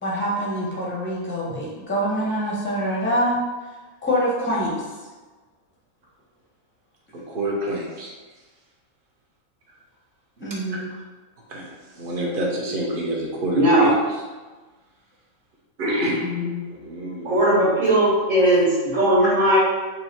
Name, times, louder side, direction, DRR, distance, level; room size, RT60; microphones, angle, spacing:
voice 1, 0.0-3.4 4.0-4.9 10.4-10.9 16.2-16.6 19.2-19.3, equal, 10° left, -4 dB, 0.5 m, -25 dB
voice 2, 7.1-8.1 11.5-11.7 11.9-14.0 15.8-16.2 16.7-17.3, right 1 dB, 45° right, -3 dB, 0.9 m, -27 dB
voice 3, 13.5-13.9 17.2-19.6, right 1 dB, 65° right, -8 dB, 1.5 m, -18 dB
4.0 x 2.3 x 4.2 m, 1.3 s
omnidirectional pair, 1.5 m